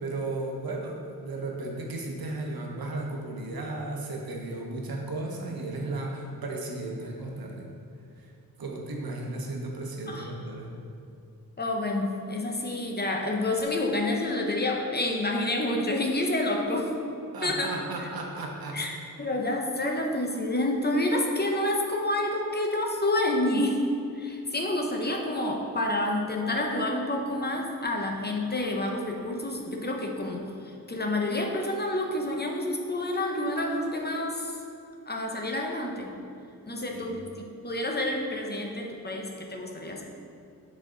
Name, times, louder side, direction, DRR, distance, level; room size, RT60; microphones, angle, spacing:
voice 1, 0.0-7.7 8.2-8.3 8.6-10.7 17.3-18.8 36.9-37.1, right 2 dB, 75° right, 0 dB, 1.0 m, -35 dB
voice 2, 11.6-16.9 17.4-17.7 18.7-23.8 24.1-34.6 35.1-36.1 36.7-37.2 37.6-40.1, left 1 dB, 25° left, 1 dB, 0.7 m, -28 dB
7.4 x 4.3 x 3.8 m, 2.6 s
wide cardioid pair, 125°, 36 cm